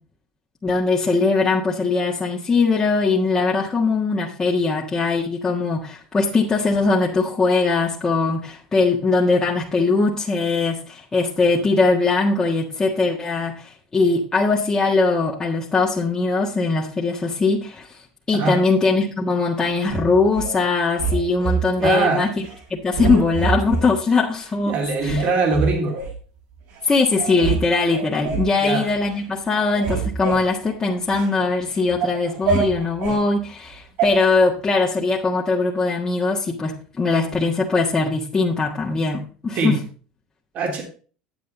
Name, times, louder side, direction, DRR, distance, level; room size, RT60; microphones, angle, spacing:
voice 1, 0.6-18.0 18.3-22.3 22.7-25.3 26.8-39.8, left 3 dB, 20° left, -3 dB, 1.6 m, -21 dB
sound 1, 19.9-20.5 21.0-22.0 22.4-22.6 22.9-23.9 24.4-24.5 25.0-26.2 26.8-26.9 27.1-27.6 27.9-28.5 29.0-29.2 29.5-31.3 31.7-33.2 34.0-34.1, right 5 dB, 70° right, 4.8 m, -26 dB
voice 2, 21.8-22.3 24.7-26.0 28.6-28.9 39.5-39.8 40.5-40.8, right 3 dB, 50° right, 2 dB, 3.2 m, -22 dB
9.3 x 8.1 x 4.0 m, 0.40 s
hypercardioid pair, 90°, 3 cm